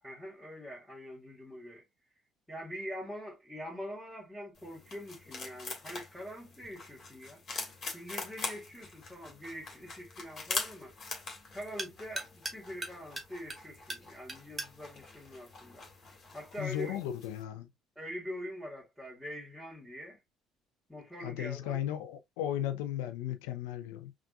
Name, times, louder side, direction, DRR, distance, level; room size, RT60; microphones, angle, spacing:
voice 1, 0.0-1.8 2.5-7.4 7.9-10.9 11.5-15.8 16.3-17.0 18.0-20.2 20.9-21.9, equal, ahead, 2.0 m, -44 dB
sound 1, 4.6-17.4, left 4 dB, 40° left, 1.7 m, -43 dB
sound 2, 8.7-16.3, right 2 dB, 20° right, 1.1 m, -46 dB
voice 2, 16.6-17.7 21.2-24.1, left 11 dB, 70° left, 0.5 m, -36 dB
5.7 x 2.5 x 2.3 m
figure-of-eight pair, 55°, 0 cm